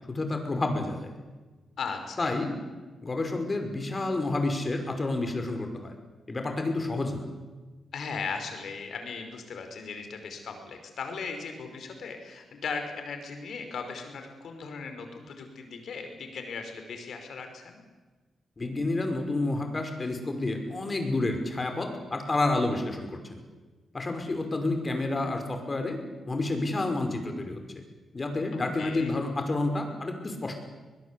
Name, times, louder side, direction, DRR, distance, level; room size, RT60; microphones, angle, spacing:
voice 1, 0.1-1.1 2.2-2.6 3.0-5.9 6.3-7.2 18.6-23.4 23.9-26.0 26.3-27.6 28.1-30.6, left 2 dB, 35° left, 5 dB, 5.5 m, -29 dB
voice 2, 1.8-2.4 7.9-17.8 28.5-29.1, left 5 dB, 70° left, 6 dB, 5.1 m, -38 dB
22.5 x 20.5 x 8.5 m, 1.3 s
cardioid pair, 60°, 0 cm